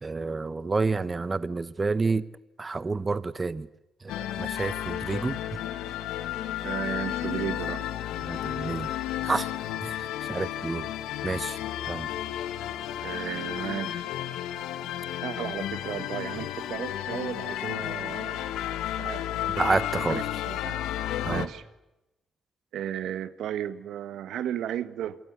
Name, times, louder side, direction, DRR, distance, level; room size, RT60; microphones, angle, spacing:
voice 1, 0.0-2.2 2.6-3.7 4.0-5.4 8.3-8.9 9.2-9.5 9.8-10.9 11.2-11.6 11.8-12.1 19.6-20.3 21.2-21.5, right 3 dB, 25° right, 1.1 m, -29 dB
sound 1, 4.1-21.5, left 12 dB, 90° left, 1.8 m, -32 dB
voice 2, 6.6-7.8 13.0-14.1 15.2-18.5 18.9-19.5 20.1-20.8 21.3-21.6 22.7-25.2, right 10 dB, 80° right, 1.7 m, -34 dB
28.0 x 23.5 x 8.2 m
cardioid pair, 90°, 0 cm